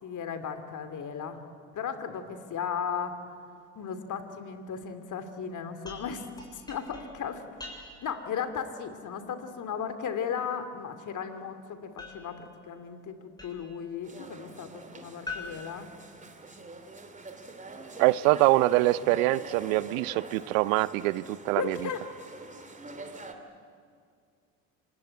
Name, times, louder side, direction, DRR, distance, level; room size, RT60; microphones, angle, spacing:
voice 1, 0.0-1.5 1.7-3.2 3.7-6.3 6.5-7.4 8.0-15.9 21.6-22.0, left 7 dB, 45° left, 9 dB, 2.8 m, -36 dB
sound 1, 5.8-8.2 12.0-13.9 15.3-16.7, left 3 dB, 10° left, 7.4 m, -45 dB
sound 2, 14.0-23.3, right 3 dB, 20° right, 2.8 m, -44 dB
voice 2, 18.0-21.8, right 18 dB, 75° right, 18 dB, 0.7 m, -24 dB
26.0 x 21.0 x 9.6 m, 2.2 s
hypercardioid pair, 70°, 41 cm